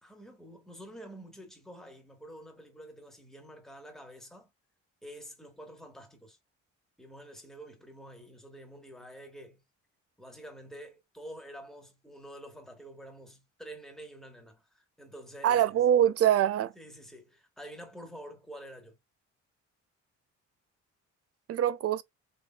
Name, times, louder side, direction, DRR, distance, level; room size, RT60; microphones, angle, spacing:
voice 1, 0.0-4.5 5.0-6.4 7.0-9.6 10.2-15.8 16.7-18.9, equal, ahead, 1.5 m, -48 dB
voice 2, 15.4-16.7 21.5-22.0, right 10 dB, 50° right, 0.5 m, -24 dB
3.8 x 3.3 x 2.3 m
cardioid pair, 90°, 30 cm